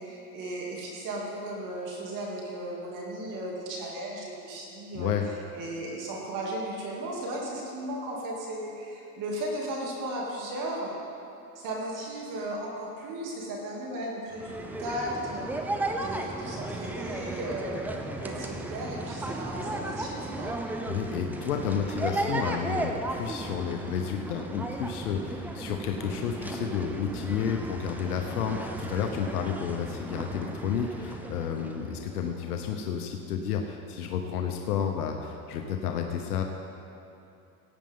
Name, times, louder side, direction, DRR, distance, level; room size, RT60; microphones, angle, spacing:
voice 1, 0.0-5.1 5.5-10.9 11.5-15.5 15.9-20.5, right 1 dB, 45° right, -3 dB, 2.8 m, -36 dB
voice 2, 4.9-5.2 20.9-36.4, left 7 dB, 85° left, 3 dB, 1.0 m, -31 dB
sound 1, 14.3-32.8, right 2 dB, 5° right, 0.3 m, -35 dB
16.5 x 8.8 x 3.8 m, 2.8 s
supercardioid pair, 115°, 44 cm